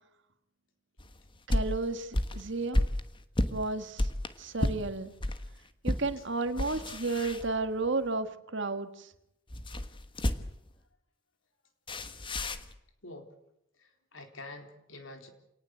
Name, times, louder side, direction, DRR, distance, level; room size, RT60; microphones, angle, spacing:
sound 1, 1.0-5.4 5.8-6.1 6.5-7.9 9.5-10.7 11.9-12.7, left 1 dB, 25° left, 1.3 m, -32 dB
voice 1, 1.5-2.9 3.5-4.1 4.4-5.1 5.8-9.1, right 3 dB, 65° right, 9 dB, 1.8 m, -32 dB
voice 2, 13.7-15.3, left 2 dB, 75° left, 6 dB, 3.9 m, -47 dB
27.5 x 19.0 x 8.0 m, 0.82 s
head